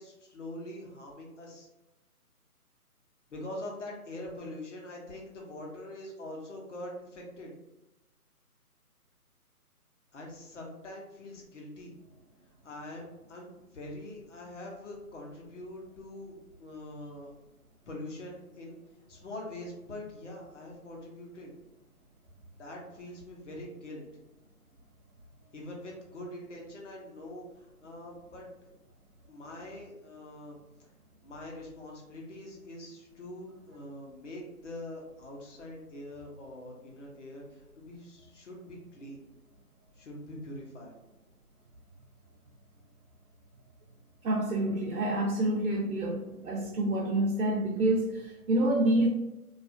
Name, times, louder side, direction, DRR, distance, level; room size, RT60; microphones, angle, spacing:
voice 1, 0.0-1.7 3.3-7.5 10.1-11.9 12.6-17.4 17.9-18.8 19.1-21.5 22.6-24.0 25.5-28.7 29.3-30.9 31.2-39.2 40.0-40.9, left 1 dB, 50° left, -1 dB, 0.7 m, -44 dB
voice 2, 44.2-49.1, right 1 dB, 65° right, -1 dB, 0.5 m, -27 dB
2.4 x 2.1 x 2.4 m, 0.98 s
figure-of-eight pair, 150°, 46 cm